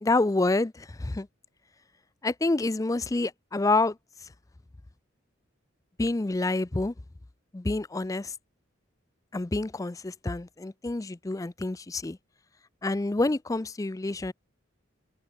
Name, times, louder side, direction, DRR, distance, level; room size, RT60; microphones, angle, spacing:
voice 1, 0.0-1.3 2.2-4.3 6.0-6.9 7.5-8.3 9.3-12.2 12.8-14.3, left 2 dB, 15° left, 0.4 m, -28 dB
open air
head